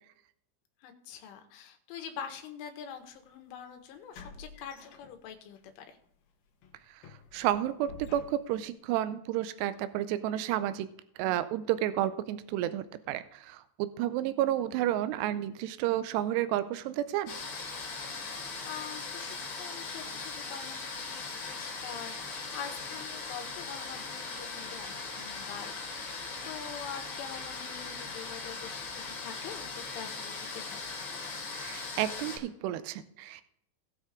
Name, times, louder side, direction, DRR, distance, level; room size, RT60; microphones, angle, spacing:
voice 1, 0.8-6.0 18.1-31.0, left 8 dB, 90° left, 5 dB, 3.8 m, -45 dB
sound 1, 3.0-3.2 4.1-5.6 6.0-6.2 6.6-8.7, left 4 dB, 65° left, 2.8 m, -50 dB
voice 2, 7.3-10.9 11.2-17.4 31.5-33.4, right 12 dB, 90° right, 13 dB, 2.4 m, -31 dB
sound 2, 17.3-32.4, left 4 dB, 40° left, 3.4 m, -39 dB
19.0 x 6.5 x 3.6 m, 0.71 s
omnidirectional pair, 5.5 m